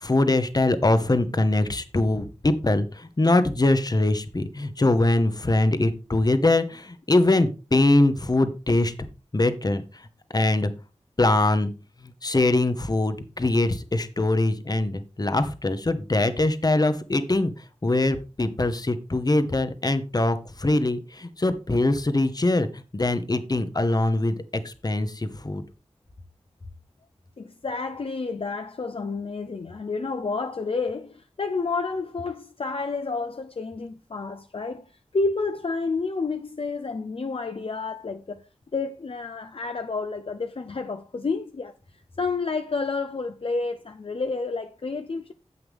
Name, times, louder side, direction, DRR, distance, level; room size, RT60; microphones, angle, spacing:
voice 1, 0.0-8.9 9.3-9.8 10.3-10.7 11.2-11.7 12.2-17.5 17.8-22.7 22.9-24.3 24.6-25.6, left 2 dB, 35° left, 1.0 m, -22 dB
voice 2, 27.4-34.9 35.1-41.7 42.2-45.3, left 4 dB, 55° left, 0.6 m, -30 dB
9.7 x 7.9 x 3.5 m
wide cardioid pair, 80°, 11 cm